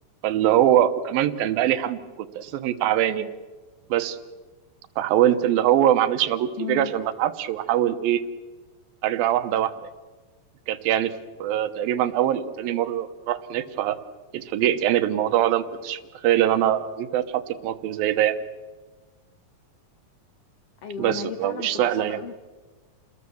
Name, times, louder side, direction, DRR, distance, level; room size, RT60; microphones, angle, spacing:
voice 1, 0.2-2.0 2.4-3.3 3.9-4.2 5.0-8.2 9.0-9.9 10.7-11.1 11.4-14.0 14.3-18.4 21.0-22.2, right 11 dB, 90° right, 11 dB, 2.9 m, -23 dB
voice 2, 6.6-7.2 20.8-22.3, left 9 dB, 85° left, 10 dB, 1.3 m, -35 dB
29.0 x 20.5 x 7.1 m, 1.3 s
omnidirectional pair, 4.0 m